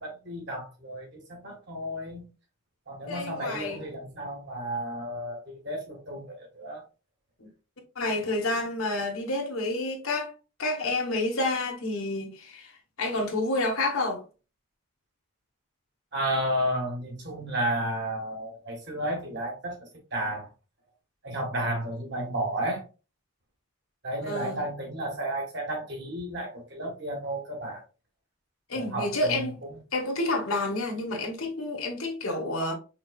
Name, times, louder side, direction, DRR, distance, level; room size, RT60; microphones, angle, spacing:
voice 1, 0.0-2.3 2.9-6.8 16.1-19.8 20.1-20.5 21.2-22.8 24.0-27.8 28.7-29.8, right 1 dB, 50° right, 1.7 m, -32 dB
voice 2, 3.1-3.8 7.4-7.5 7.9-10.3 10.6-12.7 13.0-14.2 24.3-24.6 28.7-29.6 29.9-32.7, left 2 dB, 85° left, 1.3 m, -29 dB
5.7 x 3.1 x 2.4 m
head